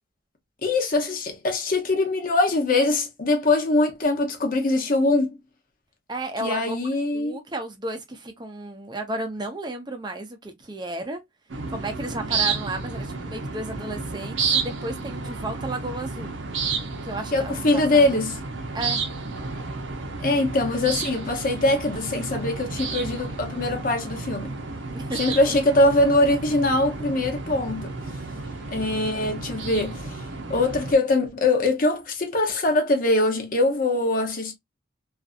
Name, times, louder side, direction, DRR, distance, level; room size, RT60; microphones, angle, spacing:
voice 1, 0.6-5.4 6.4-7.4 17.3-18.4 20.2-24.6 25.2-27.9 28.7-30.2 30.5-34.5, left 2 dB, 45° left, 0.7 m, -22 dB
voice 2, 6.1-6.8 7.1-11.2 11.7-16.4 17.0-18.2 18.7-19.0 24.9-25.5, right 2 dB, 25° right, 0.5 m, -33 dB
sound 1, 11.5-31.0, right 4 dB, 85° right, 0.6 m, -31 dB
2.6 x 2.5 x 2.3 m
head